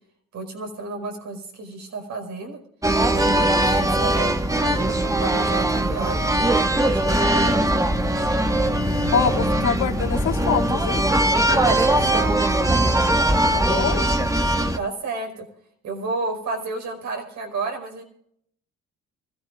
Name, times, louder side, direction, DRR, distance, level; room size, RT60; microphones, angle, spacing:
voice 1, 0.3-2.6 3.1-4.3 4.6-6.3 6.8-7.7 11.5-12.4 14.7-15.4 15.8-18.0, right 3 dB, 70° right, 2 dB, 5.3 m, -31 dB
sound 1, 2.8-14.8, right 1 dB, 10° right, 1.2 m, -20 dB
Motorcycle, 7.1-14.7, left 5 dB, 40° left, 3.0 m, -36 dB
voice 2, 9.1-11.0 13.5-14.1, left 7 dB, 75° left, 0 dB, 2.7 m, -24 dB
25.5 x 15.0 x 2.5 m, 0.69 s
cardioid pair, 90°, 30 cm